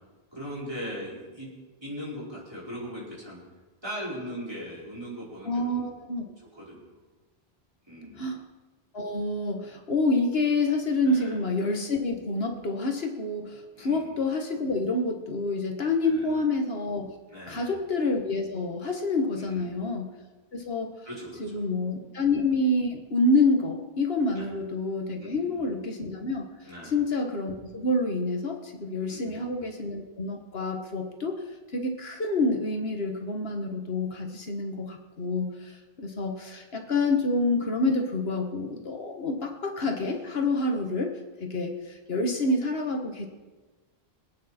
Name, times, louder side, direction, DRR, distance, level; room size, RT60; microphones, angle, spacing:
voice 1, 0.3-1.5 1.8-3.4 3.8-5.9 6.5-6.9 7.9-8.2 11.0-11.4 13.7-14.1 16.0-16.4 17.3-17.8 19.4-19.8 21.0-21.7 22.0-22.1 24.3-24.5 25.2-25.7 26.6-27.0 29.1-29.6, equal, 25° right, -7 dB, 5.1 m, -39 dB
voice 2, 5.4-6.2 8.2-8.4 8.9-17.1 17.5-20.2 20.5-20.9 21.4-26.5 26.8-31.4 31.7-41.1 41.4-43.3, left 2 dB, 70° left, 3 dB, 1.7 m, -28 dB
24.5 x 9.1 x 4.3 m, 1.2 s
omnidirectional pair, 1.1 m